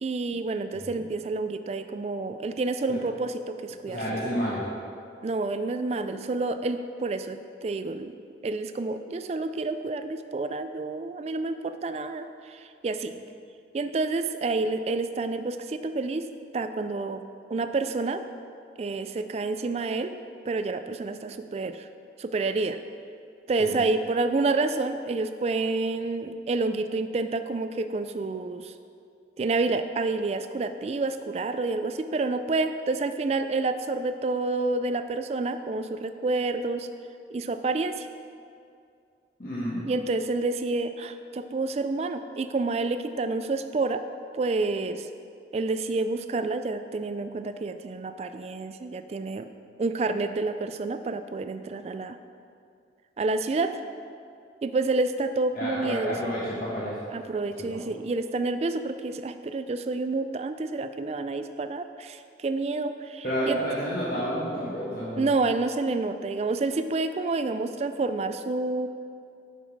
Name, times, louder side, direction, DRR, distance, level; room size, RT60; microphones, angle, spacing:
voice 1, 0.0-4.0 5.2-8.1 8.4-13.1 13.7-16.3 16.5-17.2 17.5-18.2 18.8-20.2 20.5-21.9 22.2-22.8 23.5-28.7 29.4-36.9 37.3-38.1 39.9-44.0 44.3-45.1 45.5-49.5 49.8-52.2 53.2-53.8 54.6-56.3 57.1-63.6 65.2-68.9, right 3 dB, 35° right, 9 dB, 0.3 m, -29 dB
voice 2, 3.8-4.6 23.6-23.7 39.4-39.8 55.5-57.0 57.6-57.8 63.2-65.3, equal, 55° left, -8 dB, 1.2 m, -30 dB
7.1 x 5.9 x 4.6 m, 2.4 s
head